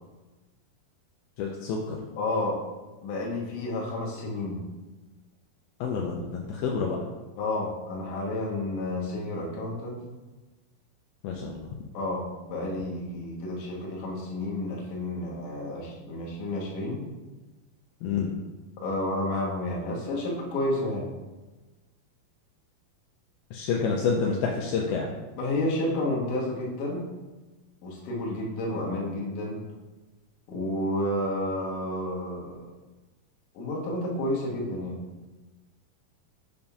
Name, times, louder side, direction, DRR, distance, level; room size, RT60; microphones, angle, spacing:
voice 1, 1.4-2.0 5.8-7.0 11.2-11.7 18.0-18.3 23.5-25.1, left 5 dB, 80° left, -1 dB, 2.3 m, -28 dB
voice 2, 2.2-2.6 3.0-4.6 7.4-10.0 11.9-17.0 18.8-21.1 25.4-27.0 27.8-29.6 30.5-32.6 33.5-35.0, left 1 dB, 65° left, -3 dB, 2.4 m, -30 dB
7.1 x 2.6 x 5.5 m, 1.2 s
omnidirectional pair, 4.6 m